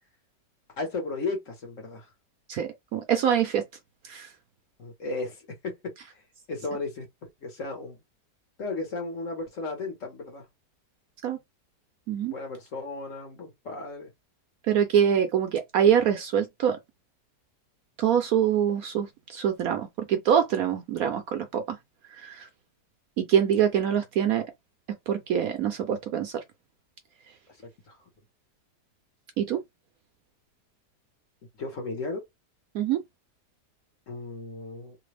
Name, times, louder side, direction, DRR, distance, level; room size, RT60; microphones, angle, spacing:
voice 1, 0.8-2.1 4.8-6.2 6.5-8.0 8.6-10.4 12.3-14.1 27.9-28.0 31.6-32.2 34.1-35.0, left 3 dB, 50° left, 1.5 m, -35 dB
voice 2, 2.5-3.6 4.0-4.3 11.2-11.4 12.1-12.3 14.7-16.8 18.0-21.8 22.1-22.5 23.2-24.4 25.1-26.4 29.4-29.6 32.7-33.0, right 9 dB, 65° right, 0.9 m, -24 dB
3.3 x 2.3 x 3.3 m
omnidirectional pair, 1.8 m